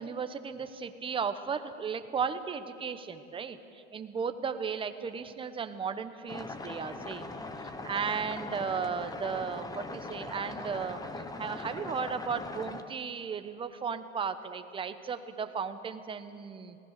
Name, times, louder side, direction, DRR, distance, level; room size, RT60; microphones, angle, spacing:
voice 1, 0.0-7.3 7.6-11.0 11.4-16.8, right 6 dB, 15° right, 9 dB, 1.0 m, -35 dB
sound 1, 6.3-12.8, left 3 dB, 10° left, 1.1 m, -41 dB
27.5 x 18.5 x 6.6 m, 2.6 s
hypercardioid pair, 135°, 38 cm